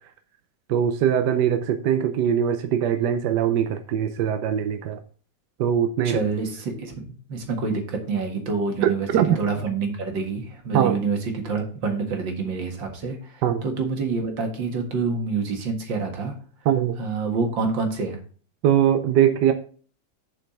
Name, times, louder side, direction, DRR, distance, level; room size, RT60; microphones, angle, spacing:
voice 1, 0.7-5.0 5.6-6.2 8.8-9.4 10.7-11.0 13.4-13.6 16.6-17.0 18.6-19.5, right 9 dB, 70° right, 8 dB, 1.3 m, -21 dB
voice 2, 6.0-9.1 9.4-16.3 17.0-18.2, right 4 dB, 90° right, 3 dB, 2.6 m, -27 dB
7.3 x 5.8 x 5.4 m, 0.42 s
omnidirectional pair, 2.0 m